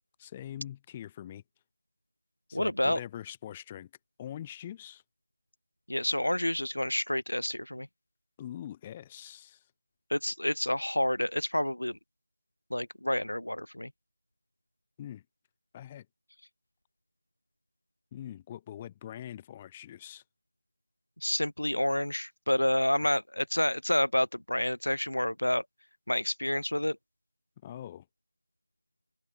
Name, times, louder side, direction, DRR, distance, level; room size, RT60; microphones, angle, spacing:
voice 1, 0.2-1.4 2.5-3.9 4.2-5.0 8.4-9.6 15.0-15.2 15.7-16.1 18.1-20.2 27.6-28.1, left 11 dB, 15° left, 1.7 m, -43 dB
voice 2, 2.5-3.0 5.9-7.9 10.1-12.0 12.7-13.9 21.2-25.6 26.1-27.0, left 1 dB, 85° left, 2.5 m, -29 dB
open air
figure-of-eight pair, 170°, 0 cm